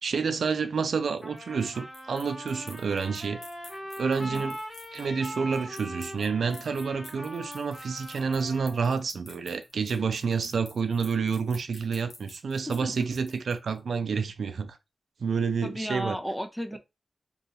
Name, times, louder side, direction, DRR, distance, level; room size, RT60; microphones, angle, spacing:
voice 1, 0.0-3.4 4.0-4.6 4.9-14.8 15.2-16.2, right 5 dB, 85° right, 0.3 m, -29 dB
sound 1, 1.2-13.8, left 2 dB, 60° left, 0.7 m, -50 dB
Trumpet, 1.2-8.9, equal, 25° left, 1.1 m, -41 dB
voice 2, 15.6-16.8, equal, 5° left, 0.3 m, -34 dB
2.8 x 2.3 x 2.6 m
wide cardioid pair, 165°, 0 cm